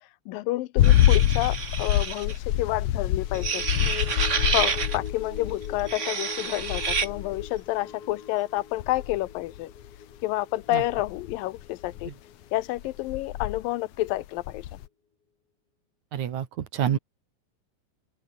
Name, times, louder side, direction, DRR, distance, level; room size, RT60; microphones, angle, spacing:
voice 1, 0.3-4.1 4.5-9.7 10.2-12.1 12.5-14.7, left 17 dB, 90° left, 2.4 m, -29 dB
sound 1, 0.8-6.0 6.5-7.6 8.8-9.9 10.8-12.1 12.8-13.6 14.1-14.9, left 12 dB, 65° left, 1.9 m, -26 dB
sound 2, 0.8-2.4 3.3-5.0 5.8-7.1, right 5 dB, 80° right, 0.6 m, -29 dB
sound 3, 3.2-13.8 14.2-14.3, left 7 dB, 45° left, 3.2 m, -44 dB
voice 2, 16.1-17.0, right 9 dB, 60° right, 2.9 m, -28 dB
open air
omnidirectional pair, 4.0 m